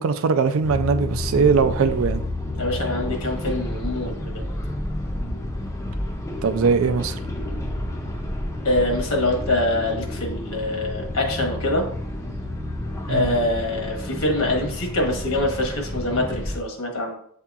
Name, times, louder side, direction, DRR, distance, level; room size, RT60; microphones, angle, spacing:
voice 1, 0.0-2.2 6.4-7.2 13.1-13.4, right 5 dB, 65° right, 0.4 m, -20 dB
sound 1, 0.6-16.6, left 1 dB, 15° left, 0.4 m, -30 dB
voice 2, 2.6-4.4 8.6-11.8 13.1-17.1, left 1 dB, 75° left, 1.2 m, -24 dB
7.9 x 2.8 x 2.4 m
head